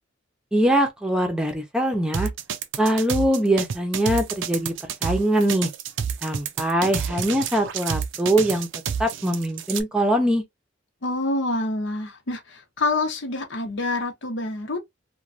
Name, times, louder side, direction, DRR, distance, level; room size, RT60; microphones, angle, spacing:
voice 1, 0.5-2.3 2.8-4.7 5.0-5.7 6.2-8.7 9.0-10.4, right 1 dB, 5° right, 0.6 m, -22 dB
sound 1, 2.1-9.8, right 7 dB, 90° right, 0.5 m, -29 dB
voice 2, 11.0-14.8, left 2 dB, 80° left, 0.8 m, -27 dB
3.0 x 2.2 x 2.5 m
head